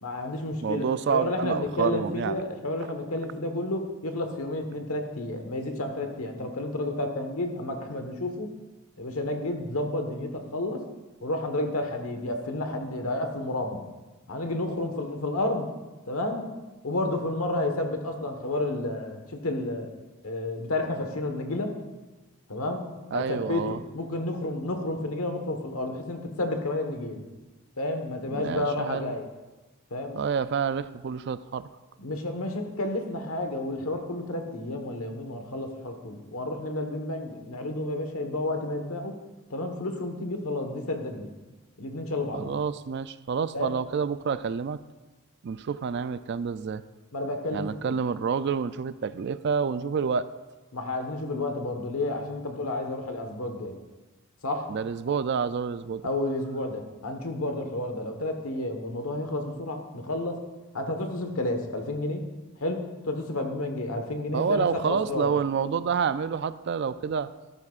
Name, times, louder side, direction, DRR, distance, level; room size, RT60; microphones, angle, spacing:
voice 1, 0.0-8.5 9.0-10.8 11.2-13.8 14.3-15.7 16.1-16.4 16.8-19.9 20.2-21.7 22.5-22.8 23.1-27.2 27.8-29.2 29.9-30.2 32.0-39.1 39.5-41.3 41.8-42.5 43.5-43.7 47.1-47.9 50.7-53.8 54.4-54.7 56.0-60.4 60.7-62.2 62.6-65.3, left 2 dB, 75° left, 5 dB, 1.3 m, -31 dB
voice 2, 0.6-2.4 23.1-23.8 28.3-29.1 30.1-31.7 42.3-44.8 45.4-46.8 47.5-50.3 54.7-56.1 64.3-67.3, right 6 dB, 50° right, 14 dB, 0.3 m, -28 dB
13.5 x 13.0 x 2.5 m, 1.2 s
head